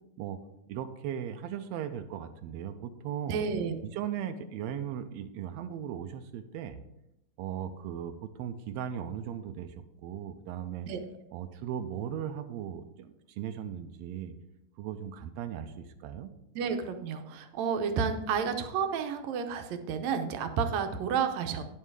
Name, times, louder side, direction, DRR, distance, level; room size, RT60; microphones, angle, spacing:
voice 1, 0.7-3.4 3.8-6.8 7.4-9.7 10.0-10.9 11.3-14.3 14.8-16.3, right 9 dB, 90° right, 8 dB, 1.5 m, -37 dB
voice 2, 3.3-3.8 10.9-11.0 16.6-21.6, right 6 dB, 75° right, 7 dB, 1.8 m, -31 dB
10.0 x 5.5 x 4.7 m, 0.87 s
omnidirectional pair, 3.6 m